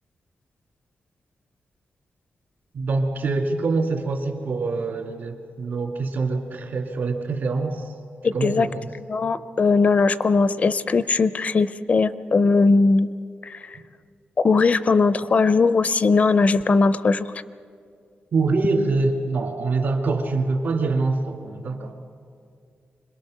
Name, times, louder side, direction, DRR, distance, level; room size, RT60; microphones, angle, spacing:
voice 1, 2.7-7.9 8.3-8.9 18.3-21.9, right 3 dB, 60° right, 2 dB, 2.5 m, -25 dB
voice 2, 8.2-8.7 8.9-13.1 13.4-13.8 14.4-17.3, left 4 dB, 40° left, 14 dB, 0.5 m, -19 dB
26.0 x 21.5 x 6.5 m, 2.3 s
wide cardioid pair, 150°, 4 cm